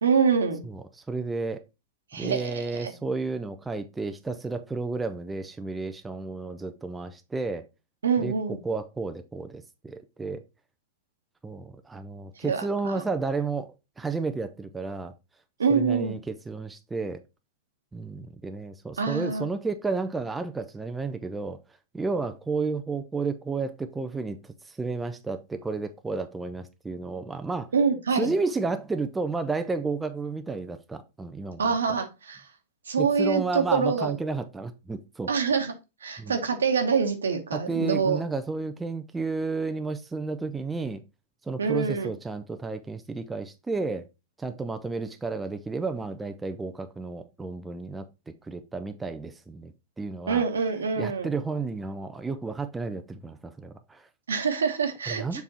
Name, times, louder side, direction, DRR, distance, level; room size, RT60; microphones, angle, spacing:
voice 1, 0.0-0.6 2.1-2.9 8.0-8.6 12.4-13.0 15.6-16.2 19.0-19.5 27.7-28.3 31.6-32.5 32.9-34.2 35.3-35.7 36.0-38.2 41.6-42.1 50.3-51.3 54.3-55.4, right 5 dB, 75° right, 1.3 m, -25 dB
voice 2, 0.6-1.6 2.2-7.7 8.2-10.4 11.4-15.1 15.7-17.2 17.9-21.6 21.9-27.7 28.1-32.0 33.0-35.3 36.2-36.4 37.5-41.0 41.5-44.1 44.4-48.1 48.4-50.4 51.0-54.1 55.1-55.4, right 3 dB, 10° right, 0.6 m, -32 dB
7.0 x 3.5 x 4.2 m
figure-of-eight pair, 100°, 0 cm